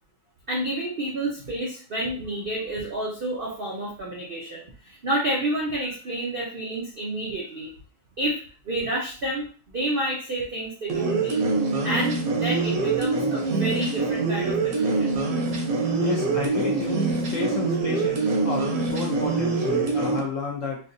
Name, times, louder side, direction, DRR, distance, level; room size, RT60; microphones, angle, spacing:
voice 1, 0.5-7.7 8.2-11.4 11.8-15.1, right 1 dB, 80° right, -3 dB, 0.4 m, -29 dB
sound 1, 10.9-20.2, right 3 dB, 60° right, 1.1 m, -25 dB
voice 2, 16.0-20.8, left 4 dB, 60° left, -1 dB, 0.9 m, -31 dB
4.6 x 2.8 x 2.6 m, 0.40 s
omnidirectional pair, 2.0 m